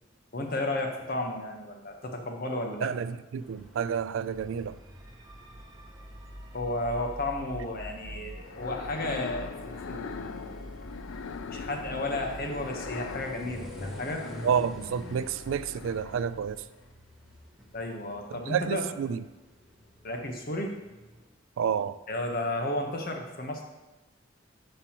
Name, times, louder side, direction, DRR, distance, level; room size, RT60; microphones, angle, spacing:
voice 1, 0.3-2.9 6.5-10.6 11.5-14.2 17.7-18.8 20.0-20.7 22.1-23.6, left 1 dB, 50° left, 1.1 m, -33 dB
voice 2, 2.8-4.8 14.4-16.6 18.3-19.2 21.6-22.0, right 7 dB, 85° right, 0.3 m, -30 dB
sound 1, 3.4-21.3, equal, ahead, 1.2 m, -49 dB
sound 2, 4.3-15.3, equal, 20° right, 0.8 m, -46 dB
sound 3, 8.4-16.4, left 5 dB, 85° left, 0.4 m, -41 dB
11.5 x 5.5 x 3.0 m
head